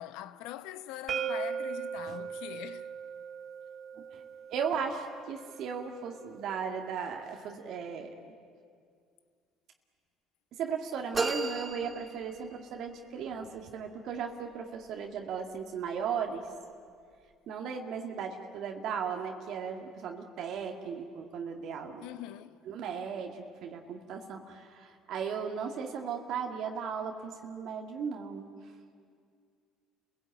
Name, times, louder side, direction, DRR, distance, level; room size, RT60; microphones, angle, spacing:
voice 1, 0.0-2.9 22.0-22.6, left 13 dB, 80° left, 0.9 m, -42 dB
sound 1, 1.1-6.9, right 7 dB, 50° right, 0.7 m, -39 dB
voice 2, 4.5-8.1 10.5-16.4 17.5-22.1 22.7-28.5, right 6 dB, 65° right, 2.0 m, -36 dB
sound 2, 11.1-12.8, right 3 dB, 25° right, 2.9 m, -34 dB
29.5 x 16.5 x 9.1 m
supercardioid pair, 80°, 0 cm